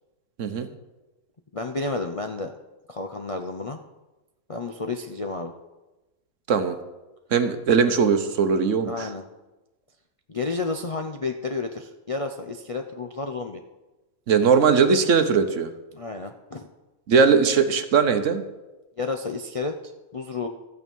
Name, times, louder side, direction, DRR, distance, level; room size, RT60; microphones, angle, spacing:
voice 1, 1.5-2.5 2.9-3.8 4.5-5.5 8.8-9.2 10.3-13.6 15.9-16.7 19.0-19.8 20.1-20.5, left 3 dB, 40° left, 3 dB, 0.5 m, -31 dB
voice 2, 7.3-9.1 14.3-15.7 17.1-18.4, right 5 dB, 60° right, 9 dB, 1.2 m, -20 dB
13.5 x 9.0 x 5.4 m, 1.1 s
omnidirectional pair, 1.5 m